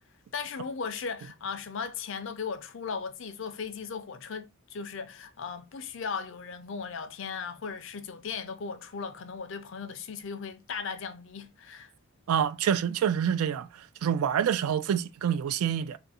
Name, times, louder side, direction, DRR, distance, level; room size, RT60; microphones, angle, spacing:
voice 1, 0.3-11.9, left 5 dB, 60° left, 0.4 m, -37 dB
voice 2, 12.3-13.7 14.0-16.0, right 8 dB, 80° right, 0.3 m, -26 dB
2.6 x 2.5 x 4.0 m
head